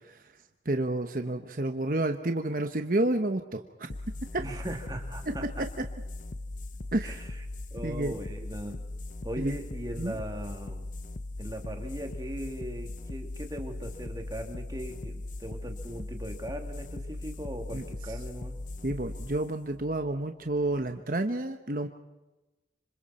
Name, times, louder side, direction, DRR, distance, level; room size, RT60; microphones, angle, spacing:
voice 1, 0.6-3.6 6.9-7.2 7.8-8.1 9.4-9.6 10.0-10.1 17.7-17.8 18.8-21.9, right 1 dB, 50° right, 6 dB, 1.1 m, -29 dB
sound 1, 3.9-20.9, left 2 dB, 45° left, 0.8 m, -39 dB
voice 2, 4.4-5.6 7.0-7.4 7.7-8.8 9.2-10.9 11.4-18.6, equal, 20° right, 3 dB, 2.7 m, -39 dB
27.0 x 25.5 x 4.3 m, 1.1 s
head